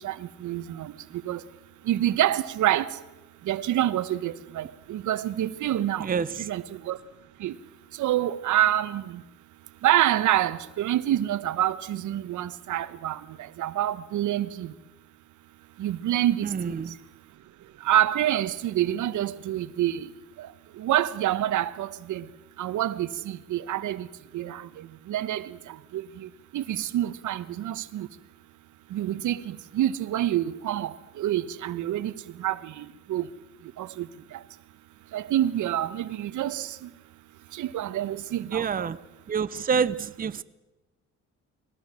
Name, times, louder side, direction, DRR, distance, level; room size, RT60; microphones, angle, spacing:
voice 1, 0.4-0.9 1.3-1.4 1.9-2.9 3.5-6.1 6.4-7.0 7.4-7.5 8.0-9.0 9.8-13.2 13.6-14.7 15.8-16.7 17.8-20.0 20.8-22.2 22.6-24.1 24.3-24.6 25.1-25.5 25.9-26.0 26.5-28.1 28.9-32.1 32.4-33.3 33.8-34.1 35.1-36.7 37.6-38.9, right 12 dB, 75° right, 1.1 m, -27 dB
voice 2, 6.0-6.5 16.4-17.0 38.5-39.0 39.3-40.4, right 6 dB, 30° right, 0.7 m, -27 dB
22.0 x 18.0 x 7.5 m
cardioid pair, 90°, 30 cm